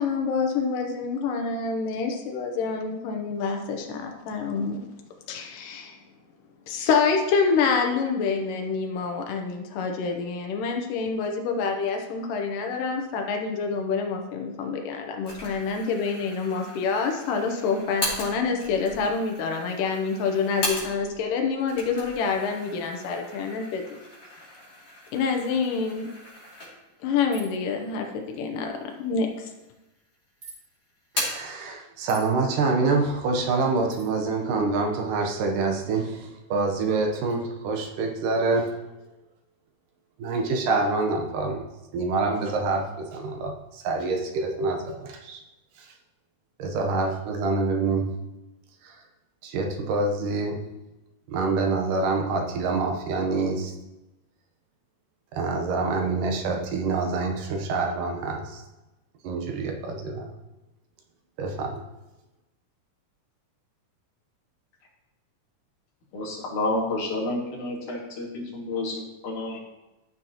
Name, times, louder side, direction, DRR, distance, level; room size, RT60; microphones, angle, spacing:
voice 1, 0.0-4.9 5.3-6.0 6.7-24.0 25.1-26.1 27.0-29.5, left 5 dB, 85° left, 3 dB, 2.5 m, -27 dB
sound 1, 15.2-21.2 21.6-27.0 27.5-27.6 28.4-29.1 29.4-30.1 30.4-31.5, left 1 dB, 30° left, 3.0 m, -37 dB
sound 2, 27.3-27.7 30.4-30.6 32.1-32.3 33.9-34.1, right 3 dB, 30° right, 2.4 m, -44 dB
voice 2, 31.1-38.8 40.2-41.7 41.9-45.4 45.8-45.9 46.6-48.2 48.8-49.0 49.4-50.7 51.3-53.7 55.3-58.6 59.2-60.3 61.4-61.9, right 3 dB, 80° right, 2 dB, 2.5 m, -26 dB
voice 3, 66.1-69.6, left 2 dB, 70° left, -4 dB, 3.5 m, -30 dB
13.5 x 6.3 x 2.9 m, 1.0 s
omnidirectional pair, 3.7 m